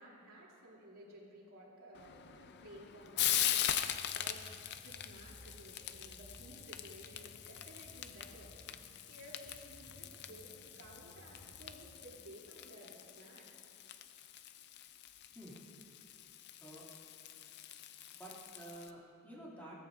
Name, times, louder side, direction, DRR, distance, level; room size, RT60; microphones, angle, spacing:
voice 1, 0.0-3.7 4.2-4.4 4.8-8.5 9.1-13.6, equal, 65° right, -6 dB, 3.1 m, -55 dB
Frying (food), 1.9-18.9, left 11 dB, 50° left, 0.5 m, -41 dB
sound 1, 3.6-11.9, equal, 35° left, 2.2 m, -59 dB
voice 2, 18.1-19.7, right 1 dB, 10° left, -7 dB, 2.6 m, -50 dB
16.0 x 14.0 x 2.6 m, 2.6 s
head